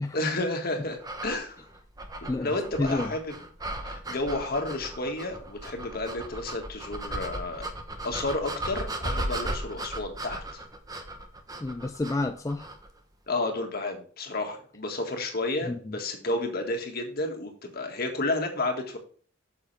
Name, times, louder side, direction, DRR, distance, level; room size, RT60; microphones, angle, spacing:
voice 1, 0.1-1.6 2.3-3.3 3.8-7.7 8.0-10.6 13.3-19.0, left 2 dB, 50° left, 1.8 m, -31 dB
sound 1, 1.0-12.9, right 1 dB, 20° right, 1.0 m, -36 dB
voice 2, 2.8-3.1 11.6-12.7 15.7-16.0, left 2 dB, 15° left, 0.4 m, -29 dB
8.7 x 6.9 x 3.4 m
head